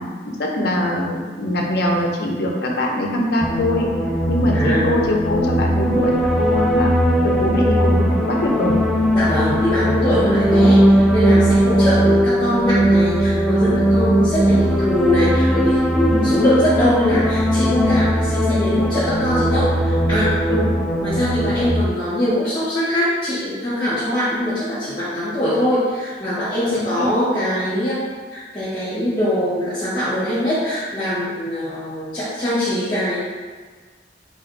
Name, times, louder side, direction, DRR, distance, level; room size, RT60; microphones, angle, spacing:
voice 1, 0.0-3.9 4.3-6.9 7.2-8.8 10.3-10.4 16.1-16.3 20.5-20.7 26.7-27.1, left 1 dB, 60° left, -1 dB, 0.6 m, -22 dB
sound 1, 3.4-21.7, equal, ahead, 0.3 m, -18 dB
voice 2, 4.5-4.9 9.1-20.3 21.0-28.0 28.3-33.2, equal, 25° left, -12 dB, 1.1 m, -22 dB
3.7 x 2.5 x 3.9 m, 1.5 s
head